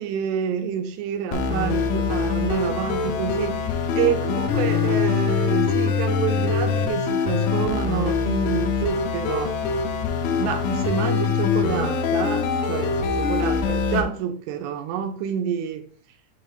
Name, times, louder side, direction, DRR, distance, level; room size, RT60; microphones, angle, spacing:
voice 1, 0.0-9.6 10.4-15.9, right 8 dB, 85° right, 3.1 m, -28 dB
sound 1, 1.3-14.0, left 5 dB, 90° left, 3.6 m, -23 dB
8.1 x 3.3 x 3.8 m
omnidirectional pair, 5.7 m